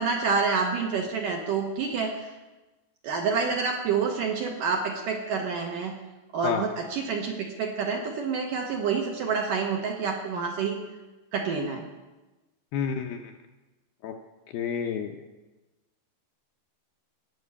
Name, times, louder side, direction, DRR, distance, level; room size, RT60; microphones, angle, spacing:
voice 1, 0.0-2.3 3.0-6.0 6.3-10.8 11.3-11.9, right 5 dB, 70° right, 1 dB, 2.2 m, -28 dB
voice 2, 12.7-13.3 14.0-14.1 14.5-15.1, left 7 dB, 75° left, 3 dB, 2.3 m, -29 dB
18.0 x 6.0 x 8.2 m, 1.1 s
omnidirectional pair, 5.0 m